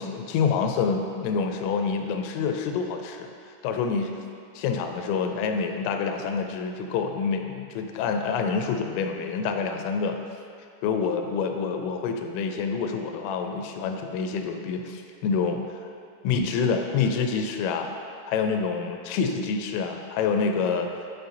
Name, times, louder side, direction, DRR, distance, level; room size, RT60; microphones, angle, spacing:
voice 1, 0.0-3.3 3.6-4.2 4.6-10.2 10.8-15.8 16.2-17.9 18.3-20.9, left 5 dB, 85° left, 5 dB, 3.0 m, -27 dB
11.0 x 4.6 x 2.6 m, 2.4 s
omnidirectional pair, 5.8 m